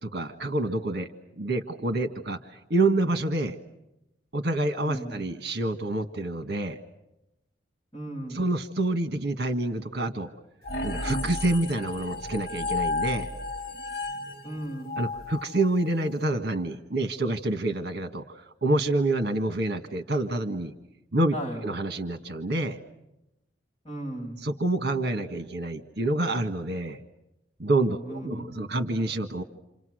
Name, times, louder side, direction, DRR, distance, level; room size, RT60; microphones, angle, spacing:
voice 1, 0.0-1.1 1.4-3.5 4.3-6.8 8.3-10.3 10.8-13.3 15.0-20.7 21.1-21.3 21.6-22.8 24.4-27.0 27.6-29.4, right 2 dB, 55° right, 7 dB, 1.6 m, -27 dB
voice 2, 4.8-5.3 7.9-8.4 14.4-14.9 21.3-21.6 23.8-24.4 27.9-28.6, right 1 dB, 25° left, -2 dB, 7.2 m, -36 dB
sound 1, 10.6-16.1, left 2 dB, 55° left, 2.1 m, -33 dB
28.5 x 28.5 x 6.4 m, 0.90 s
head